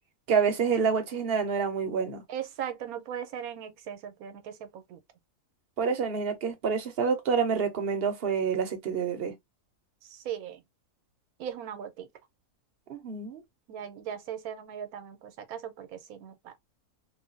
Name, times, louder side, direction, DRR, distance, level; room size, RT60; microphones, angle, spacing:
voice 1, 0.3-2.2 5.8-9.3 12.9-13.4, right 6 dB, 50° right, 0.8 m, -27 dB
voice 2, 2.3-5.0 10.1-10.6 11.4-12.1 13.7-16.5, right 9 dB, 80° right, 1.1 m, -38 dB
3.1 x 2.2 x 2.4 m
omnidirectional pair, 1.5 m